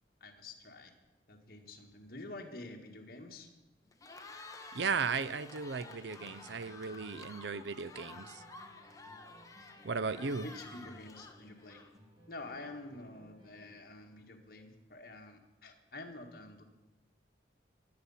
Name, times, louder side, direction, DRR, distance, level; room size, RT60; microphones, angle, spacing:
voice 1, 0.2-0.9 1.3-3.5 10.4-11.8 12.3-16.6, left 2 dB, 55° left, 3 dB, 1.7 m, -48 dB
Cheering, 3.9-12.1, left 3 dB, 20° left, 1.1 m, -51 dB
voice 2, 4.7-8.4 9.8-10.5, right 5 dB, 80° right, 17 dB, 0.6 m, -36 dB
sound 1, 6.2-14.2, equal, 25° right, 2.7 m, -60 dB
21.5 x 8.6 x 5.6 m, 1.1 s
head